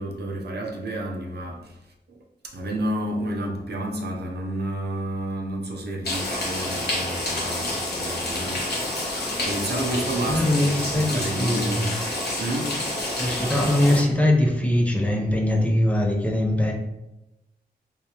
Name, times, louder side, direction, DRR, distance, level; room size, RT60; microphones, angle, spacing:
voice 1, 0.0-1.8 2.1-2.2 2.4-12.0 12.4-12.9, right 1 dB, 75° right, 0 dB, 0.7 m, -31 dB
sound 1, 6.0-14.0, left 1 dB, 70° left, 1.1 m, -28 dB
voice 2, 10.3-11.9 13.2-16.7, left 1 dB, 10° left, -1 dB, 0.7 m, -22 dB
3.4 x 3.2 x 2.9 m, 0.93 s
wide cardioid pair, 100°, 17 cm